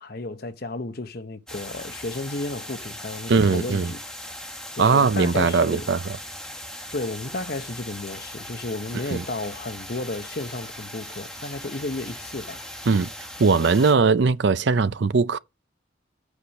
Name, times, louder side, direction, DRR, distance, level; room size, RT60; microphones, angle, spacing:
voice 1, 0.0-4.0 4.7-5.9 6.9-12.6, left 2 dB, 50° left, 0.9 m, -33 dB
sound 1, 1.5-13.9, equal, 5° left, 1.5 m, -39 dB
voice 2, 3.3-3.9 4.8-6.2 9.1-9.2 12.9-13.1 13.4-15.4, right 4 dB, 60° right, 0.5 m, -20 dB
8.4 x 4.9 x 5.3 m
head